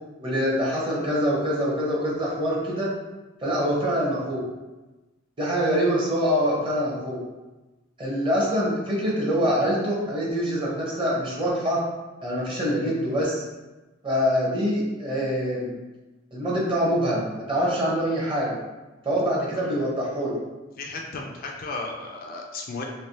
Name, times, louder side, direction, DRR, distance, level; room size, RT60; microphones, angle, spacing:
voice 1, 0.2-2.9 3.4-4.5 5.4-7.2 8.0-11.8 12.2-13.4 14.0-15.8 16.3-18.5 19.0-20.4, equal, 25° right, -4 dB, 0.9 m, -25 dB
voice 2, 20.8-22.8, left 3 dB, 50° left, 1 dB, 0.4 m, -34 dB
3.2 x 2.8 x 2.8 m, 1.1 s
head